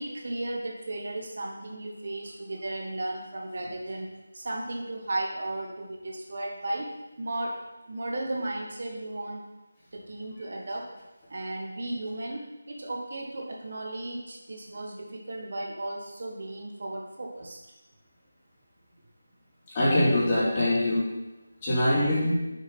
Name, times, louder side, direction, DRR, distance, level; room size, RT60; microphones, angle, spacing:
voice 1, 0.0-6.9 7.2-7.6 7.9-9.4 9.9-10.9 11.3-17.6, right 1 dB, 50° right, 0 dB, 1.5 m, -35 dB
voice 2, 19.7-21.0 21.6-22.4, left 1 dB, 25° left, -9 dB, 3.5 m, -23 dB
9.8 x 7.1 x 4.2 m, 1.1 s
figure-of-eight pair, 160°, 0 cm